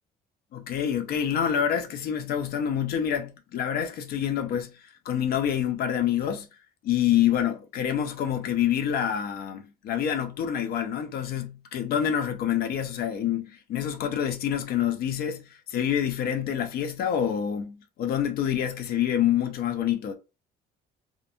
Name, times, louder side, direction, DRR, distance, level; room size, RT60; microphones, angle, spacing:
voice 1, 0.5-6.5 6.8-20.1, left 9 dB, 65° left, 0.5 m, -27 dB
2.6 x 2.5 x 2.5 m
cardioid pair, 110°, 17 cm